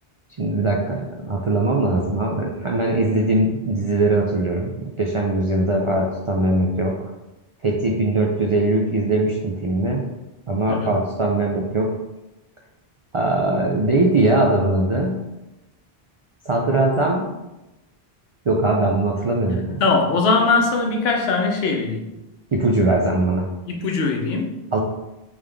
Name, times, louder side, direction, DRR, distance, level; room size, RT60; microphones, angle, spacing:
voice 1, 0.4-7.0 7.6-10.0 10.5-11.9 13.1-15.2 16.5-17.2 18.5-19.8 22.5-23.5 24.7-24.8, right 2 dB, 50° right, -1 dB, 0.3 m, -21 dB
voice 2, 19.8-22.1 23.7-24.6, left 3 dB, 75° left, 2 dB, 0.9 m, -21 dB
3.6 x 3.5 x 3.3 m, 0.99 s
omnidirectional pair, 1.0 m